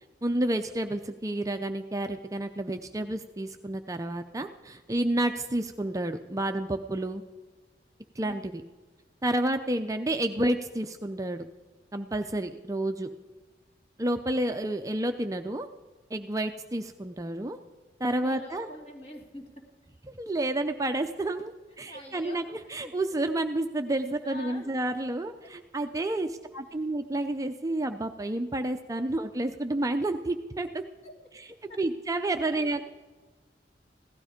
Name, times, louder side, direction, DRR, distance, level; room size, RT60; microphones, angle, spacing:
voice 1, 0.2-7.2 8.2-8.6 9.2-11.5 11.9-13.1 14.0-15.7 16.1-17.6 18.0-18.7 20.1-30.8 31.3-32.8, right 1 dB, 20° right, 7 dB, 0.5 m, -30 dB
voice 2, 8.2-8.5 18.1-19.5 21.9-22.9 24.2-24.7 26.0-26.3 31.0-31.1 32.4-32.8, left 1 dB, 35° left, 0 dB, 2.4 m, -46 dB
16.0 x 12.5 x 5.1 m, 1.3 s
head